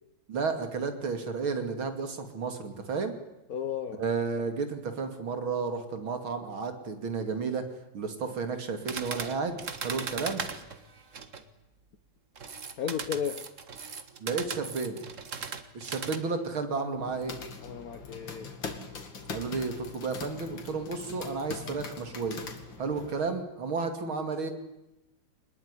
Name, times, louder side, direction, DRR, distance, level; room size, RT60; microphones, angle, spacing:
voice 1, 0.3-3.1 4.0-7.7 7.9-10.4 14.2-15.1 15.7-17.3 19.3-22.4 22.8-24.5, right 4 dB, 85° right, 7 dB, 3.4 m, -32 dB
voice 2, 3.5-4.0 12.8-13.5 17.6-18.6, left 8 dB, 50° left, 9 dB, 1.4 m, -34 dB
sound 1, 8.9-11.4 12.4-16.2, right 5 dB, 40° right, 1.7 m, -38 dB
sound 2, 16.9-23.2, left 4 dB, 70° left, 3.0 m, -42 dB
23.5 x 20.5 x 9.8 m, 0.93 s
omnidirectional pair, 2.2 m